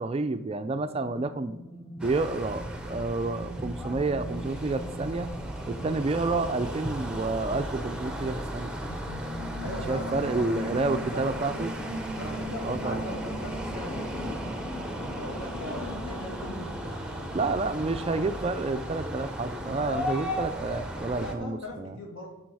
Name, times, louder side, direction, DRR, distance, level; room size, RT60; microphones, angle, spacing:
voice 1, 0.0-1.6 2.0-5.3 5.7-8.7 9.6-11.7 12.6-13.0 17.3-22.0, right 3 dB, 25° right, 10 dB, 0.3 m, -29 dB
sound 1, 0.9-16.6, left 1 dB, 25° left, 1.3 m, -41 dB
sound 2, 2.0-21.3, equal, 5° right, 0.7 m, -36 dB
voice 2, 9.6-11.7 12.2-14.4 15.0-17.4 21.2-22.3, left 1 dB, 70° left, 0 dB, 2.6 m, -40 dB
10.0 x 6.3 x 4.7 m, 0.99 s
head